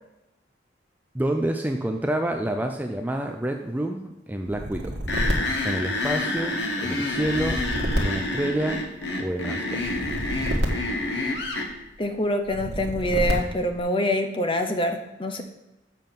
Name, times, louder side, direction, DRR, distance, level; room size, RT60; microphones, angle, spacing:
voice 1, 1.1-5.0 5.6-7.6 8.0-8.8 9.2-9.9, right 1 dB, 10° right, 4 dB, 0.4 m, -28 dB
sound 1, 4.5-6.4 7.1-9.1 9.8-11.7 12.5-13.8, equal, 55° right, 1.5 m, -29 dB
sound 2, 5.1-11.7, left 2 dB, 65° left, 1.3 m, -28 dB
voice 2, 12.0-15.4, left 1 dB, 25° left, 6 dB, 0.7 m, -25 dB
7.5 x 5.3 x 5.9 m, 0.94 s
head